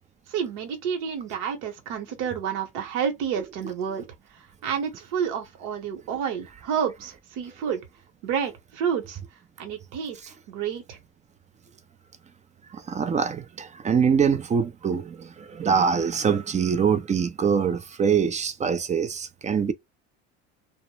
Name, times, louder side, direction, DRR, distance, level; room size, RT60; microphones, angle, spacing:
voice 1, 0.3-4.1 4.3-7.8 8.2-9.2 9.6-10.2 10.5-11.0, right 7 dB, 70° right, 0.9 m, -29 dB
voice 2, 12.7-19.7, right 6 dB, 20° right, 0.4 m, -24 dB
2.1 x 2.0 x 3.0 m
hypercardioid pair, 80°, 33 cm